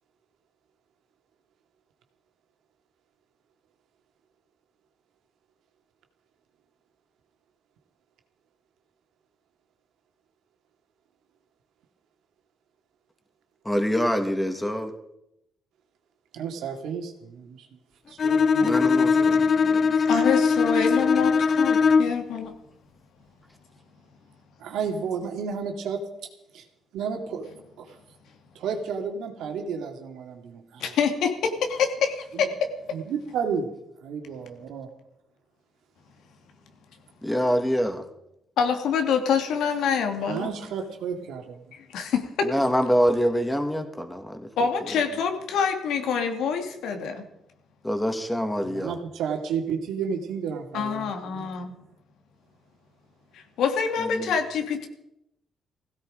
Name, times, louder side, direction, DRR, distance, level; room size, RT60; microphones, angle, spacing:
voice 1, 13.6-14.9 18.6-19.9 37.2-38.0 42.4-44.5 47.8-48.9 54.0-54.3, equal, 10° left, 5 dB, 2.5 m, -25 dB
voice 2, 16.3-17.7 18.1-19.5 20.1-20.2 24.6-26.0 26.5-26.6 26.9-28.0 28.5-30.9 32.3-32.5 32.9-33.7 34.0-34.9 40.2-41.6 48.6-51.5, right 6 dB, 85° right, 4 dB, 2.5 m, -32 dB
Bowed string instrument, 18.2-22.3, left 5 dB, 50° left, 0.6 m, -21 dB
voice 3, 20.1-22.5 30.8-32.7 38.6-40.5 41.7-42.5 44.6-47.2 50.7-51.7 53.3-54.9, left 6 dB, 80° left, 5 dB, 2.6 m, -26 dB
16.5 x 16.5 x 5.1 m, 0.84 s
cardioid pair, 90°, 0 cm